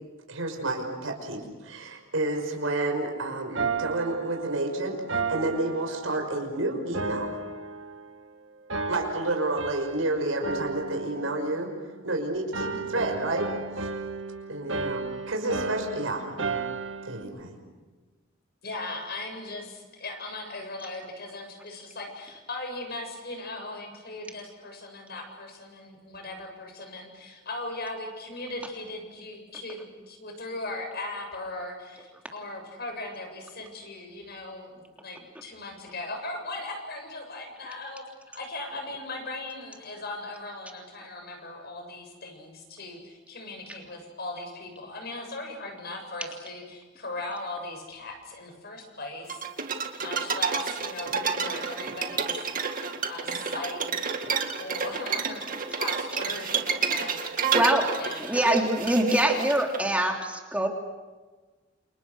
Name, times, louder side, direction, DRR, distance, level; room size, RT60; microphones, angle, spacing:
voice 1, 0.3-7.3 8.9-11.7 12.0-13.9 14.5-16.6 17.0-17.6, right 2 dB, 90° right, 2 dB, 5.9 m, -30 dB
sound 1, 3.6-6.5 6.9-8.3 8.7-10.1 10.4-12.2 12.5-17.2, right 4 dB, 65° right, 1.8 m, -34 dB
voice 2, 18.6-38.0 38.3-49.5 50.0-52.5 53.1-54.2 54.6-55.4 55.7-57.5 58.0-58.3, left 2 dB, 55° left, 4 dB, 7.5 m, -38 dB
sound 2, 49.3-59.8, right 6 dB, 45° right, 2.2 m, -30 dB
voice 3, 57.5-57.9 58.2-60.7, right 1 dB, 5° right, 1 dB, 3.3 m, -24 dB
29.5 x 29.0 x 6.5 m, 1.3 s
head